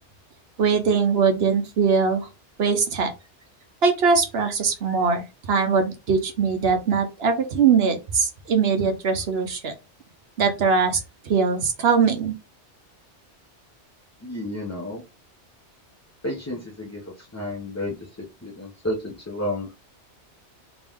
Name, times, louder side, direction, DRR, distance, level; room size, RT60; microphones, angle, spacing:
voice 1, 0.6-2.3 2.6-3.1 3.8-9.7 10.4-12.3, right 5 dB, 60° right, 6 dB, 1.0 m, -21 dB
voice 2, 14.2-15.0 16.2-18.1 18.4-19.7, left 1 dB, 15° left, -3 dB, 0.6 m, -31 dB
3.5 x 2.9 x 3.5 m, 0.26 s
omnidirectional pair, 1.2 m